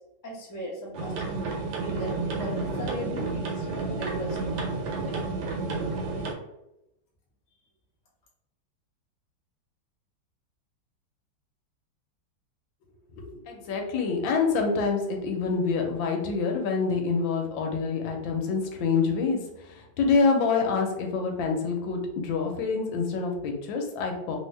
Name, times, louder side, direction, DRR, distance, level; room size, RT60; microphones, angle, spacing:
voice 1, 0.2-4.6, right 1 dB, 25° left, -5 dB, 0.4 m, -37 dB
sound 1, 0.9-6.3, right 3 dB, 80° right, 1.4 m, -31 dB
voice 2, 13.1-24.4, left 4 dB, 85° left, 2 dB, 1.4 m, -26 dB
3.0 x 2.7 x 3.2 m, 0.89 s
omnidirectional pair, 2.1 m